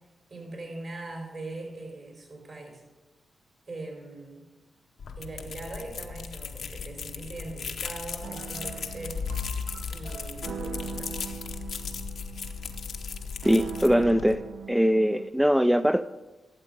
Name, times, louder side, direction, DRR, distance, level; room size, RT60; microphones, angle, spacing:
voice 1, 0.3-2.8 3.7-4.4 5.2-9.2 9.9-11.0, right 2 dB, 55° right, 1 dB, 4.0 m, -41 dB
sound 1, 5.0-14.4, left 6 dB, 75° left, 0.8 m, -36 dB
sound 2, 8.2-15.3, right 6 dB, 80° right, 0.5 m, -41 dB
voice 2, 13.4-14.4 14.7-16.0, equal, 5° right, 11 dB, 0.3 m, -22 dB
12.0 x 7.5 x 5.1 m, 1.1 s
supercardioid pair, 50°, 0 cm